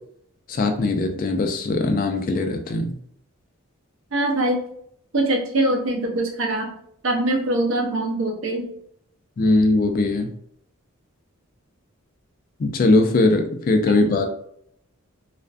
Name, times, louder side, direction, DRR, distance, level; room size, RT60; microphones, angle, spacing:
voice 1, 0.5-3.0 9.4-10.3 12.6-14.3, left 2 dB, 40° left, 6 dB, 0.3 m, -20 dB
voice 2, 4.1-4.6 5.1-6.7 7.0-8.7, right 1 dB, 65° right, 2 dB, 0.5 m, -23 dB
2.4 x 2.4 x 2.3 m, 0.69 s
head